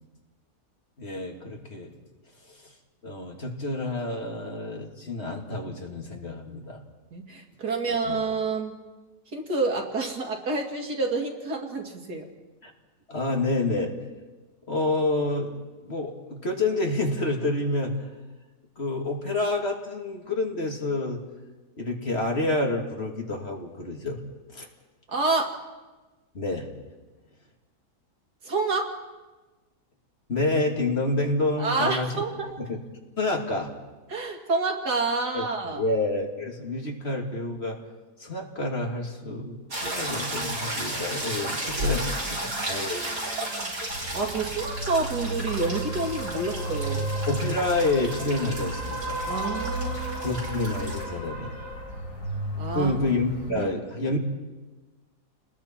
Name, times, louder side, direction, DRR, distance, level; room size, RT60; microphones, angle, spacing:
voice 1, 1.0-1.9 2.5-2.6 3.0-6.8 7.8-8.2 12.6-12.7 13.1-13.9 14.7-15.5 15.8-18.0 18.8-21.2 21.8-24.2 24.5-24.7 26.3-26.7 30.3-32.2 32.6-32.8 33.2-33.7 35.3-37.8 38.2-43.2 47.3-49.2 50.2-51.5 52.7-54.2, left 2 dB, 40° left, 1 dB, 2.6 m, -28 dB
voice 2, 7.1-8.8 9.3-12.2 25.1-25.5 28.4-28.9 31.6-32.6 34.1-35.8 41.8-42.9 43.4-43.7 44.1-47.0 49.3-50.3 52.6-52.9 53.5-53.7, right 3 dB, 75° right, 2 dB, 2.9 m, -29 dB
sound 1, 39.7-51.0, right 1 dB, 55° right, 5.0 m, -33 dB
sound 2, 43.9-53.5, right 1 dB, 75° left, 5.2 m, -33 dB
29.5 x 20.5 x 4.5 m, 1.2 s
omnidirectional pair, 1.7 m